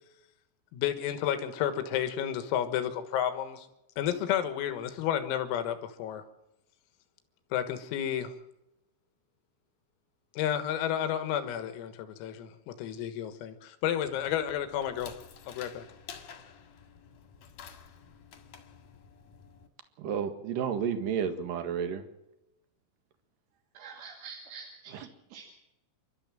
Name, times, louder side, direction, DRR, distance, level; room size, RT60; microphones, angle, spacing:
voice 1, 0.7-3.7 4.0-6.2 7.5-8.3 10.3-15.1 15.5-15.8, left 10 dB, 90° left, 8 dB, 4.2 m, -31 dB
sound 1, 14.0-19.7, left 7 dB, 55° left, 2.5 m, -50 dB
voice 2, 20.0-22.0, right 7 dB, 60° right, 8 dB, 2.5 m, -31 dB
voice 3, 23.7-25.6, right 5 dB, 75° right, 2 dB, 4.7 m, -47 dB
28.5 x 12.5 x 7.6 m, 0.91 s
omnidirectional pair, 5.9 m